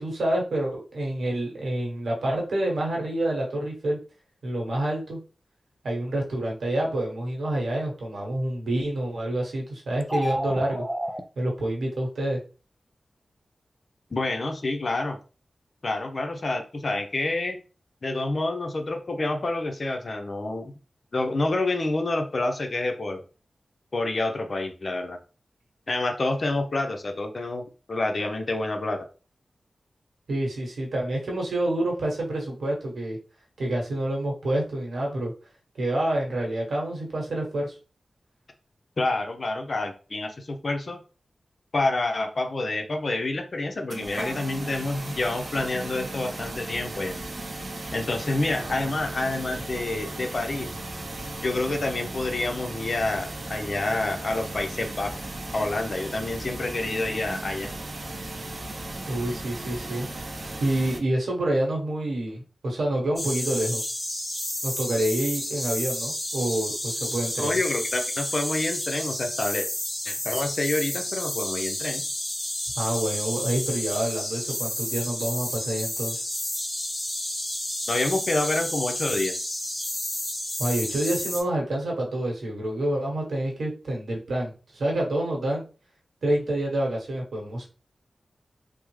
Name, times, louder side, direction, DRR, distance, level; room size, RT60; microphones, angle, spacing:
voice 1, 0.0-4.0 4.4-5.2 5.8-10.8 11.4-12.4 30.3-33.2 33.6-35.3 35.7-37.8 59.1-60.1 60.6-63.8 64.6-67.5 72.8-76.2 80.6-85.6 86.2-87.7, right 1 dB, 85° right, -1 dB, 1.0 m, -27 dB
sound 1, 10.0-11.2, equal, ahead, 0.4 m, -29 dB
voice 2, 14.1-15.2 15.8-17.6 18.0-20.7 21.1-23.2 23.9-25.2 25.9-29.1 39.0-41.0 41.7-47.1 47.9-50.7 51.4-55.2 55.5-57.7 67.4-69.7 70.1-72.1 77.9-79.3, left 2 dB, 50° left, 5 dB, 0.5 m, -28 dB
sound 2, 43.9-61.0, right 2 dB, 50° right, 0.6 m, -36 dB
sound 3, 63.2-81.4, left 1 dB, 25° left, 1.0 m, -31 dB
3.4 x 2.0 x 3.1 m, 0.36 s
wide cardioid pair, 90°, 0 cm